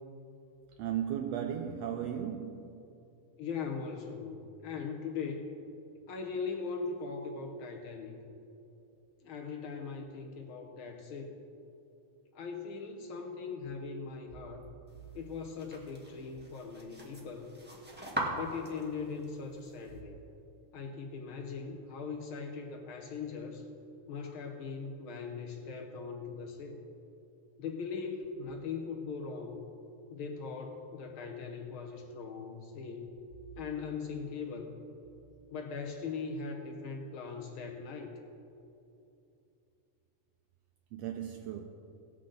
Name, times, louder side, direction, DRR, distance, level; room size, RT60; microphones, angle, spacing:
voice 1, 0.8-2.8 40.9-41.6, right 9 dB, 85° right, 1.5 m, -36 dB
voice 2, 3.4-5.5 6.1-8.2 9.2-11.4 12.3-14.6 15.1-17.5 18.3-20.2 20.7-23.6 24.1-26.8 27.6-29.6 30.1-33.1 33.6-34.7 35.5-38.1, left 5 dB, 80° left, 1.1 m, -40 dB
sound 1, 14.9-20.0, right 1 dB, 15° right, 0.3 m, -42 dB
18.0 x 7.7 x 3.9 m
omnidirectional pair, 3.5 m